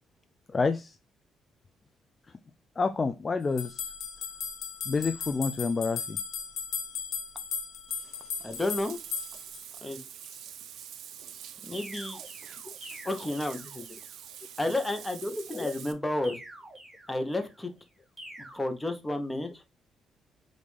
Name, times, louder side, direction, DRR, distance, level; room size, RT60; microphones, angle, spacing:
voice 1, 0.5-0.9 2.8-3.9 4.9-6.2 15.5-15.7, left 4 dB, 30° left, 0.3 m, -28 dB
sound 1, 3.6-9.6, left 6 dB, 70° left, 0.8 m, -36 dB
Bathtub (filling or washing), 7.9-15.9, right 9 dB, 75° right, 0.4 m, -45 dB
voice 2, 8.4-9.0 9.8-10.0 11.6-12.2 13.0-13.8 14.6-16.4 17.1-17.7 18.5-19.6, left 1 dB, 15° left, 0.9 m, -31 dB
sound 2, 11.7-14.2 16.2-17.6 18.2-18.6, right 1 dB, 15° right, 1.7 m, -47 dB
5.1 x 2.5 x 3.2 m
cardioid pair, 90°, 0 cm